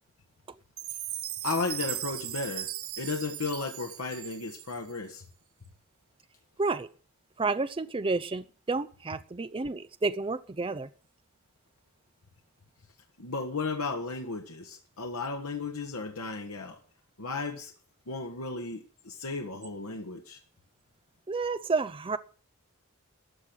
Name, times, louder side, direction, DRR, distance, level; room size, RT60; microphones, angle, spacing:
Chime, 0.8-5.0, right 13 dB, 65° right, 0.9 m, -38 dB
voice 1, 1.4-2.7 3.0-5.2 13.2-16.8 17.2-17.7 18.1-20.4, left 3 dB, 85° left, 3 dB, 1.4 m, -34 dB
voice 2, 7.4-10.9 21.3-22.2, right 3 dB, 25° right, 12 dB, 0.5 m, -30 dB
13.5 x 6.2 x 8.7 m, 0.43 s
head